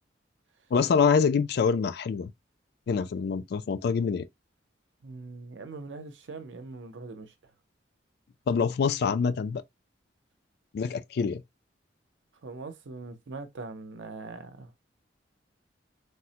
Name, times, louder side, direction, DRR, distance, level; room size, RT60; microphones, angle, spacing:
voice 1, 0.7-2.3 2.9-4.3 8.5-9.6 10.7-11.4, left 5 dB, 60° left, 0.3 m, -25 dB
voice 2, 5.0-7.3 12.4-14.8, right 3 dB, 80° right, 0.6 m, -42 dB
3.3 x 2.1 x 2.7 m
head